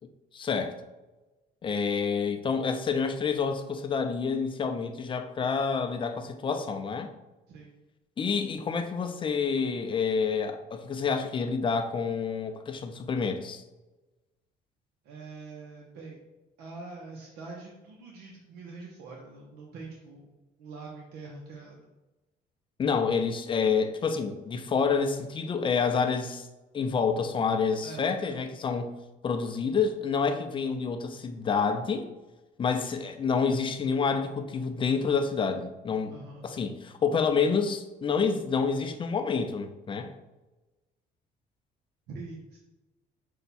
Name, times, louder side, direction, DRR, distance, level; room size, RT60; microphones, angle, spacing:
voice 1, 0.3-0.7 1.6-7.1 8.2-13.6 22.8-26.5 26.7-28.9 29.2-32.1 32.6-36.1 36.4-40.2, left 5 dB, 30° left, 7 dB, 0.5 m, -28 dB
voice 2, 15.0-16.2 16.6-21.9 27.8-28.4 36.1-36.5 42.1-42.6, right 3 dB, 85° right, -2 dB, 0.8 m, -44 dB
5.5 x 2.3 x 4.1 m, 1.1 s
cardioid pair, 110°, 17 cm